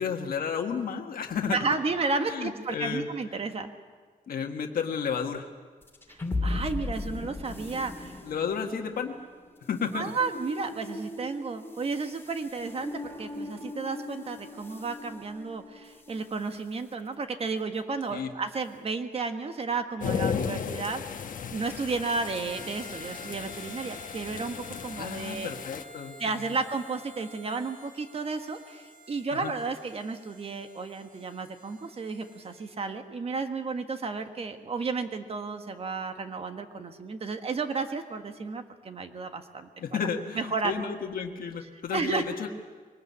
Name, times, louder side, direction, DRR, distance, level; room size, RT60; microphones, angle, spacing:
voice 1, 0.0-1.6 2.2-3.1 3.4-3.5 4.3-5.5 8.3-9.1 9.7-10.1 18.1-18.3 20.3-20.5 25.0-26.1 29.4-29.5 39.8-42.5, left 6 dB, 80° left, 3 dB, 1.6 m, -32 dB
voice 2, 1.5-3.7 6.1-8.2 9.9-24.5 24.8-25.5 26.2-39.7 40.3-40.9 41.9-42.2, right 4 dB, 40° right, 7 dB, 1.5 m, -33 dB
sound 1, 5.8-16.3, left 2 dB, 15° left, 2.8 m, -38 dB
sound 2, 20.0-25.8, left 7 dB, 65° left, 1.2 m, -35 dB
Harmonica, 22.4-32.7, equal, 75° right, 4.6 m, -50 dB
23.0 x 19.5 x 8.6 m, 1.5 s
wide cardioid pair, 155°, 15 cm